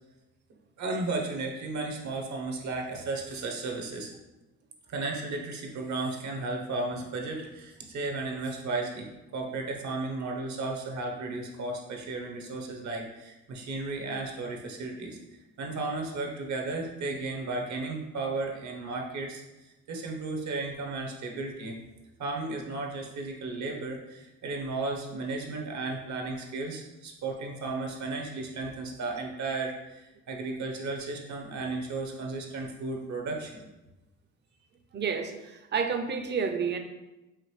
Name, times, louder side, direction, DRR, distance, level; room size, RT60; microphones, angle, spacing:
voice 1, 0.8-4.1 4.9-15.2 15.6-21.7 22.2-33.6, right 3 dB, 65° right, 1 dB, 0.9 m, -34 dB
voice 2, 34.9-36.8, right 6 dB, 35° right, 6 dB, 0.5 m, -30 dB
4.9 x 2.6 x 3.1 m, 1.0 s
cardioid pair, 90°, 30 cm